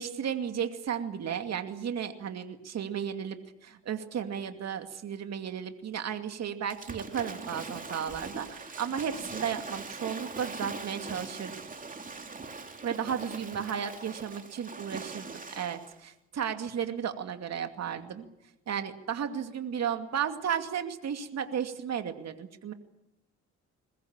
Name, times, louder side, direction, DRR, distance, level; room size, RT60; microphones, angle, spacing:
voice 1, 0.0-11.5 12.8-18.3 18.7-22.7, right 8 dB, 60° right, 7 dB, 2.5 m, -34 dB
Waves surf / Splash splatter, 6.7-16.0, right 4 dB, 25° right, 2.9 m, -41 dB
22.0 x 20.5 x 9.0 m, 0.85 s
cardioid pair, 90°, 30 cm